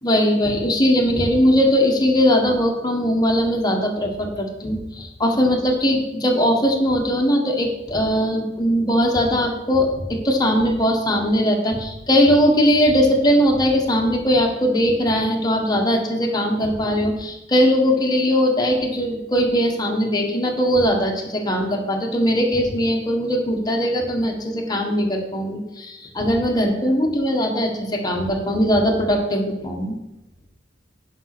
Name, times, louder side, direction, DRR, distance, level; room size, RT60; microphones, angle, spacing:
voice 1, 0.0-29.9, equal, 20° left, 0 dB, 1.5 m, -20 dB
9.2 x 5.6 x 6.0 m, 0.95 s
head